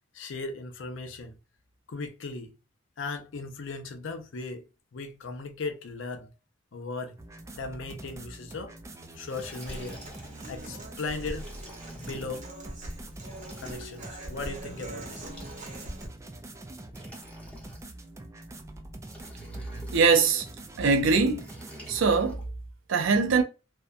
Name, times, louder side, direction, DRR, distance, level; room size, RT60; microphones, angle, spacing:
voice 1, 0.1-1.3 1.9-2.5 3.0-4.7 4.9-6.3 6.7-7.2 7.5-8.7 9.1-10.0 10.5-11.5 12.0-12.5 13.6-15.2, left 3 dB, 70° left, 0.5 m, -37 dB
sound 1, 7.2-22.0, right 1 dB, 15° right, 0.3 m, -45 dB
Liquid, 9.0-10.5 11.3-12.4 13.2-14.1 15.0-16.1 16.9-18.1 19.1-20.2 21.4-22.4, left 1 dB, 5° left, 0.9 m, -50 dB
Human voice / Acoustic guitar, 9.6-16.1, right 1 dB, 40° right, 0.8 m, -42 dB
voice 2, 19.9-20.5 20.8-21.5 21.9-22.4 22.9-23.4, right 4 dB, 75° right, 0.5 m, -22 dB
2.7 x 2.1 x 2.4 m
head